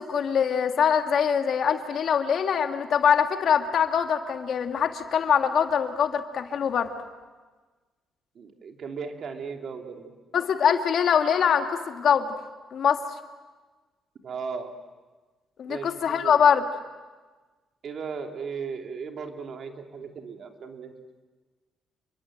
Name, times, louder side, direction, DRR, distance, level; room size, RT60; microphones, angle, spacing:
voice 1, 0.0-6.9 10.3-12.3 12.7-13.0 15.6-16.6, left 7 dB, 60° left, 6 dB, 2.1 m, -23 dB
voice 2, 8.3-10.1 14.2-14.7 15.7-16.4 17.8-20.9, right 5 dB, 55° right, 4 dB, 3.1 m, -36 dB
29.0 x 23.0 x 7.9 m, 1.3 s
cardioid pair, 90°, 0 cm